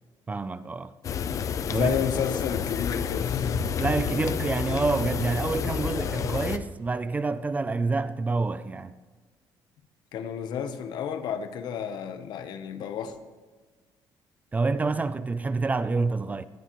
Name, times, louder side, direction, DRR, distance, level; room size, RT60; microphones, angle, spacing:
voice 1, 0.3-0.9 1.7-1.9 3.8-8.9 14.5-16.5, right 3 dB, 20° right, 0.4 m, -27 dB
sound 1, 1.0-6.6, left 7 dB, 45° left, 0.7 m, -29 dB
voice 2, 1.7-3.6 10.1-13.2, left 8 dB, 65° left, 1.1 m, -31 dB
18.0 x 12.5 x 3.2 m
cardioid pair, 130°, 8 cm